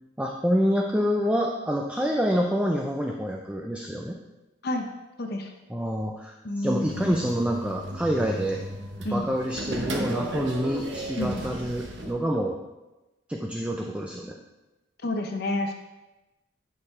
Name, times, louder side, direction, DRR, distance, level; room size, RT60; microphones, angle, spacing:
voice 1, 0.2-4.2 5.7-8.6 9.1-12.6 13.3-14.4, equal, 5° right, 0 dB, 0.4 m, -27 dB
voice 2, 5.2-5.5 6.4-7.1 9.0-9.3 11.2-11.4 15.0-15.7, left 1 dB, 55° left, 4 dB, 0.7 m, -29 dB
sound 1, 6.8-12.1, right 1 dB, 65° right, 1.0 m, -34 dB
10.5 x 4.7 x 3.2 m, 1.1 s
head